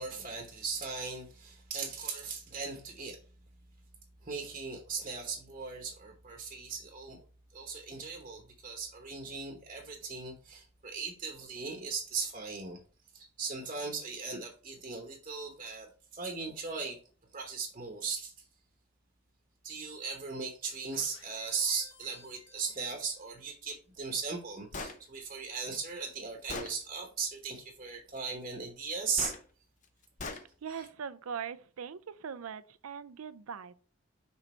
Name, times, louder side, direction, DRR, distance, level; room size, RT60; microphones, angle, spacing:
voice 1, 0.0-3.2 4.2-7.2 7.5-12.8 13.1-17.0 17.3-18.3 19.6-29.3 30.7-30.9, right 5 dB, 35° right, 1.0 m, -38 dB
sound 1, 20.9-23.3, left 3 dB, 65° left, 1.9 m, -56 dB
Gunshot gunfire, 24.7-25.0 25.9-26.0 26.5-26.7 29.2-29.4 30.2-30.4, left 3 dB, 35° left, 0.7 m, -39 dB
voice 2, 30.6-33.8, right 7 dB, 90° right, 0.5 m, -41 dB
6.1 x 3.9 x 4.3 m
head